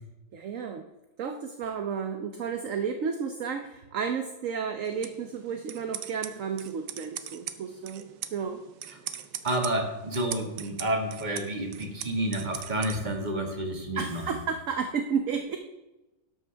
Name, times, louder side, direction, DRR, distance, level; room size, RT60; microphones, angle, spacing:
voice 1, 0.3-0.9 1.2-8.6 14.0-15.6, right 6 dB, 55° right, 6 dB, 1.0 m, -32 dB
sound 1, 4.8-13.0, right 10 dB, 70° right, 1.4 m, -41 dB
voice 2, 9.4-14.2, right 1 dB, 25° right, 2 dB, 1.9 m, -30 dB
12.5 x 11.5 x 3.5 m, 1.0 s
omnidirectional pair, 2.0 m